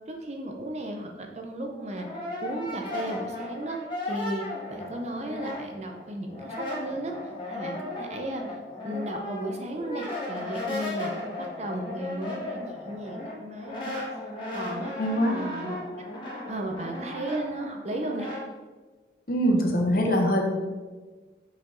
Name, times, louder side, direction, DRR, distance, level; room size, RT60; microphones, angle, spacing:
voice 1, 0.1-2.1 2.4-3.8 4.0-4.4 4.7-8.6 8.8-11.1 11.4-14.1 14.5-14.9 15.3-16.1 16.5-18.3, right 1 dB, 35° right, 3 dB, 0.7 m, -35 dB
Brass instrument, 1.6-6.0 6.3-18.5, left 2 dB, 25° left, 1.6 m, -36 dB
voice 2, 15.0-15.4 19.3-20.4, equal, 50° left, 1 dB, 1.1 m, -23 dB
6.5 x 5.1 x 3.9 m, 1.3 s
head